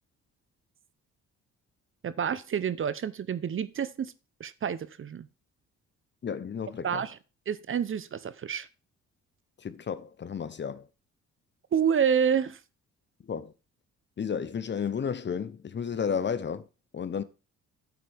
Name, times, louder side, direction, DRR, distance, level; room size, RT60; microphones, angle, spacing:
voice 1, 2.0-4.1 4.4-5.3 6.8-7.2 7.5-8.7 11.7-12.6, right 8 dB, 45° right, 0.8 m, -28 dB
voice 2, 6.2-7.0 9.6-10.8 13.3-13.5 14.2-16.6 16.9-17.2, left 7 dB, 35° left, 0.9 m, -32 dB
9.4 x 8.0 x 3.5 m
cardioid pair, 90°, 30 cm